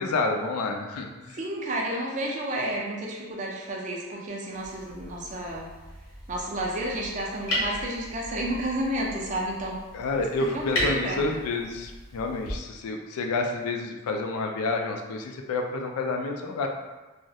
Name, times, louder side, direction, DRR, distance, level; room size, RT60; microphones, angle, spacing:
voice 1, 0.0-1.4 9.9-16.7, left 3 dB, 85° left, 3 dB, 0.3 m, -29 dB
voice 2, 1.3-5.7 6.3-9.8 10.4-11.3, right 1 dB, 35° right, -3 dB, 0.3 m, -31 dB
sound 1, 4.5-12.5, equal, 70° left, 0.9 m, -35 dB
2.3 x 2.0 x 2.7 m, 1.2 s
head